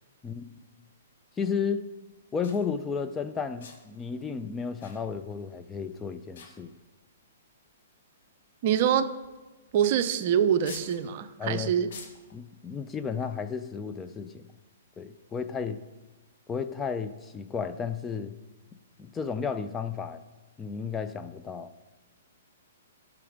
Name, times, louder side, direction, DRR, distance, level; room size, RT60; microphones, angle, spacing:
voice 1, 0.2-0.6 1.4-1.9 2.3-6.7 11.4-11.7 12.3-14.4 15.0-15.8 16.5-18.3 19.0-20.2 20.6-21.7, left 6 dB, 15° left, 9 dB, 0.5 m, -33 dB
sound 1, 2.1-2.2 2.4-2.7 3.6-4.0 4.8-5.5 5.7-6.0 6.3-7.0 7.8-7.9 9.1-9.3 9.7-9.8 10.6-11.0 11.9-12.3 13.1-13.4, left 5 dB, 60° left, 1.7 m, -48 dB
voice 2, 8.6-9.1 9.7-11.9, right 9 dB, 50° right, 11 dB, 0.6 m, -25 dB
11.0 x 6.0 x 5.1 m, 1.2 s
hypercardioid pair, 130°, 0 cm